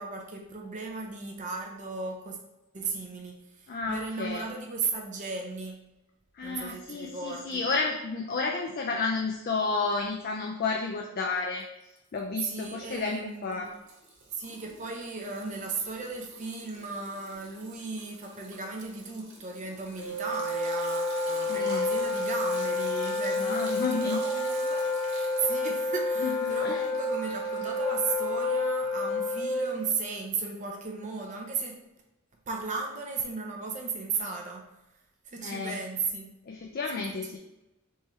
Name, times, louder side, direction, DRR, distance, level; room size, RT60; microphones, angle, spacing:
voice 1, 0.0-2.4 2.7-5.8 6.4-7.7 12.4-13.7 14.3-31.8 32.5-34.7 35.2-36.3 36.9-37.4, right 4 dB, 35° right, 1 dB, 0.5 m, -36 dB
voice 2, 3.7-4.4 6.4-11.6 12.1-13.7 21.5-21.9 23.4-24.2 26.2-26.8 35.4-35.8 36.5-37.4, left 4 dB, 45° left, 1 dB, 0.4 m, -31 dB
Liquid, 11.6-12.2 12.5-28.7, right 2 dB, 55° right, 1.2 m, -49 dB
Wind instrument woodwind instrument, 20.0-29.9, left 2 dB, 60° left, 0.9 m, -29 dB
3.6 x 3.1 x 4.3 m, 0.96 s
head